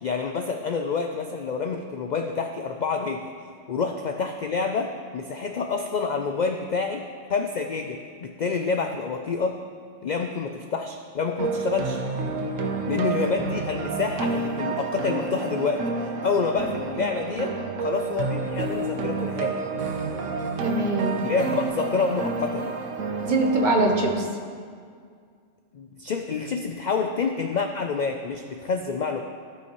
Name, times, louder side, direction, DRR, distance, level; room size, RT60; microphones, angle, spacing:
voice 1, 0.0-3.3 3.7-9.6 10.0-12.0 12.9-19.6 21.2-22.6 25.7-29.2, left 4 dB, 70° left, 5 dB, 0.4 m, -28 dB
sound 1, 11.4-24.2, right 4 dB, 75° right, 1.1 m, -29 dB
voice 2, 20.6-21.3 23.2-24.3, right 2 dB, 40° right, 2 dB, 0.9 m, -23 dB
15.5 x 5.6 x 3.0 m, 2.1 s
omnidirectional pair, 1.3 m